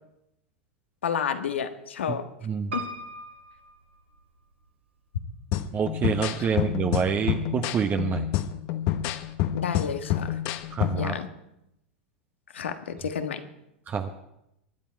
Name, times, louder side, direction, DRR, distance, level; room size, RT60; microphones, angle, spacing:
voice 1, 1.0-2.2 2.7-2.8 9.5-10.4 11.0-11.3 12.5-13.4, left 7 dB, 80° left, 8 dB, 1.5 m, -30 dB
voice 2, 2.4-2.7 5.7-8.3 10.7-11.2 13.9-14.1, right 6 dB, 30° right, 6 dB, 1.0 m, -27 dB
Piano, 2.7-4.7 5.3-6.0 6.4-6.5 6.7-6.8, right 2 dB, 85° right, 2.4 m, -39 dB
sound 1, 5.5-11.2, left 12 dB, 50° left, 1.1 m, -28 dB
24.0 x 10.5 x 4.6 m, 0.83 s
hypercardioid pair, 100°, 6 cm